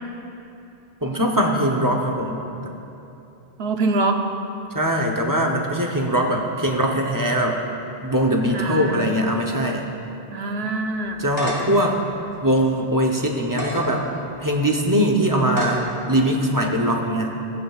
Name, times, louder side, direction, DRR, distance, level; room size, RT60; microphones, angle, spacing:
voice 1, 1.0-2.7 4.7-7.6 8.0-9.9 11.2-12.0 12.4-14.1 14.4-17.3, equal, 20° right, 0 dB, 0.8 m, -21 dB
voice 2, 3.6-4.2 8.5-9.0 10.3-11.3, right 3 dB, 70° right, 4 dB, 1.0 m, -24 dB
sound 1, 11.0-11.8 12.3-12.4 13.4-13.8 14.5-14.6 15.5-15.8, left 1 dB, 50° left, 1.9 m, -28 dB
16.0 x 9.5 x 2.4 m, 2.9 s
omnidirectional pair, 1.1 m